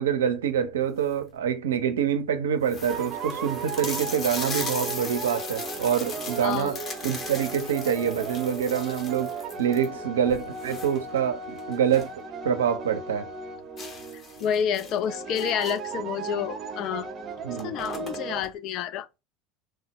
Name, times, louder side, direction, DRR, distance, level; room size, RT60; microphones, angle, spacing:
voice 1, 0.0-12.1 12.4-13.3 17.4-17.8, right 8 dB, 80° right, 0.5 m, -26 dB
sound 1, 0.8-1.3 1.9-2.0 2.2-2.3 2.6-12.2 12.5-12.6 13.0-13.1 13.8-16.0 16.9-17.1 17.3-18.5, left 4 dB, 40° left, 0.9 m, -38 dB
sound 2, 2.9-18.4, right 5 dB, 45° right, 0.7 m, -36 dB
voice 2, 6.4-6.7 14.4-17.1 17.6-19.1, left 8 dB, 55° left, 0.3 m, -29 dB
3.2 x 2.0 x 2.9 m
hypercardioid pair, 80°, 0 cm